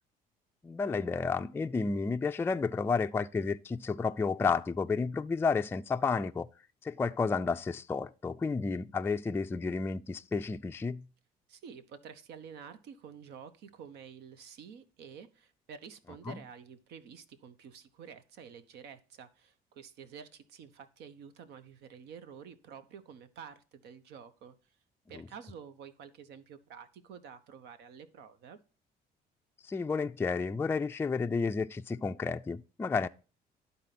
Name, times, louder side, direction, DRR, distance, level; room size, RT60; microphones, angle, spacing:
voice 1, 0.6-6.5 6.8-11.1 16.3-16.4 29.6-33.1, left 4 dB, 15° left, 0.3 m, -31 dB
voice 2, 11.5-24.6 25.1-28.6, right 7 dB, 80° right, 1.0 m, -50 dB
12.0 x 4.1 x 5.9 m
cardioid pair, 110°, 17 cm